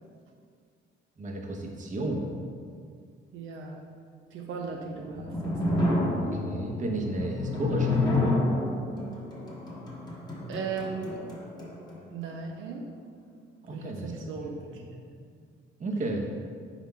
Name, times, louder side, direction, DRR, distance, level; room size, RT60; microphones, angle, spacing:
voice 1, 1.2-2.3 6.2-8.3 13.7-14.9 15.8-16.3, right 2 dB, 40° right, 1 dB, 1.0 m, -33 dB
voice 2, 3.3-3.8 4.3-5.3 5.7-6.0 10.5-11.2 12.1-12.9 13.7-14.8, right 5 dB, 85° right, 0 dB, 0.6 m, -37 dB
sound 1, 4.9-12.0, left 2 dB, 20° left, 1.4 m, -29 dB
4.6 x 4.1 x 5.5 m, 2.2 s
cardioid pair, 90°, 20 cm